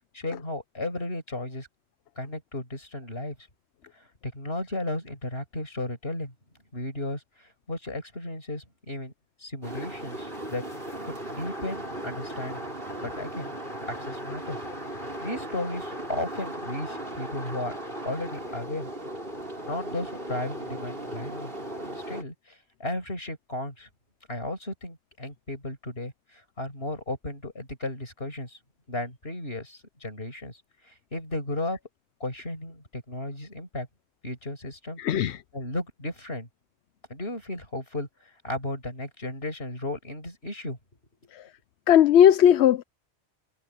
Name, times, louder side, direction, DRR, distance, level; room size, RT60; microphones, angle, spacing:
voice 1, 0.1-1.7 2.2-3.4 4.2-6.3 6.7-9.1 9.4-10.6 11.0-12.6 13.0-13.5 13.9-14.6 15.2-17.8 18.0-18.9 19.7-21.5 22.1-23.9 24.3-28.6 28.9-30.6 30.9-31.8 32.2-33.9 34.2-35.0 35.5-36.5 37.1-38.1 38.4-40.8 41.2-41.3, left 1 dB, 70° left, 6.2 m, -34 dB
sound 1, 9.6-22.2, right 1 dB, 60° right, 7.5 m, -37 dB
voice 2, 35.0-35.4 41.3-41.4 41.9-42.8, left 10 dB, 90° left, 0.9 m, -17 dB
omnidirectional pair, 1.1 m